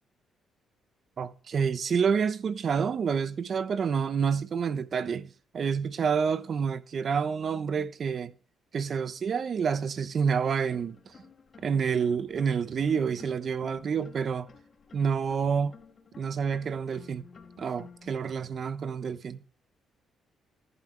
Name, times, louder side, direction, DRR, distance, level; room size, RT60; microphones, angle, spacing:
voice 1, 1.2-5.3 5.5-8.3 8.7-11.0 11.6-14.5 14.9-15.8 16.2-17.2 17.6-19.4, right 6 dB, 50° right, 0.9 m, -28 dB
sound 1, 10.4-18.1, left 5 dB, 40° left, 3.0 m, -53 dB
19.5 x 11.0 x 3.4 m
cardioid pair, 90°, 0 cm